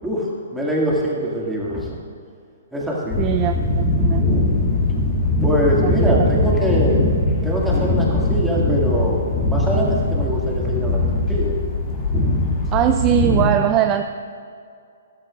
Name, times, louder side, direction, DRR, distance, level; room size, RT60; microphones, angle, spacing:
voice 1, 0.0-2.0 2.7-3.2 5.4-7.2 7.4-9.2 9.5-11.5, equal, 5° right, -5 dB, 2.1 m, -23 dB
sound 1, 3.1-13.5, left 2 dB, 20° left, 2.4 m, -20 dB
voice 2, 3.2-4.3 5.8-6.2 12.7-14.0, right 11 dB, 25° right, 7 dB, 0.4 m, -21 dB
13.0 x 13.0 x 2.5 m, 2.3 s
hypercardioid pair, 140°, 0 cm